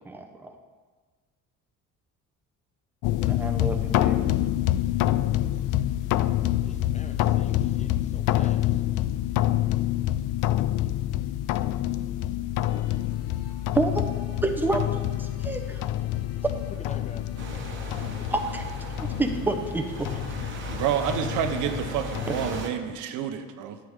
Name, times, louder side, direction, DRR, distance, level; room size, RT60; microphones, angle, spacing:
voice 1, 0.0-0.5 3.2-4.2 13.7-14.0 14.4-14.8 15.2-15.8 18.3-18.6 19.0-20.1, right 2 dB, 5° right, 4 dB, 0.8 m, -28 dB
sound 1, 3.0-22.6, left 13 dB, 80° left, 0.5 m, -27 dB
voice 2, 6.6-8.7 16.8-17.2 18.2-18.4, left 4 dB, 25° left, 8 dB, 0.5 m, -46 dB
sound 2, 12.7-20.5, left 6 dB, 55° left, 0.9 m, -47 dB
sound 3, 17.4-22.7, right 3 dB, 40° right, 1.2 m, -38 dB
voice 3, 20.7-23.8, right 9 dB, 85° right, 8 dB, 0.8 m, -29 dB
10.5 x 8.7 x 3.6 m, 1.4 s
cardioid pair, 130°, 30 cm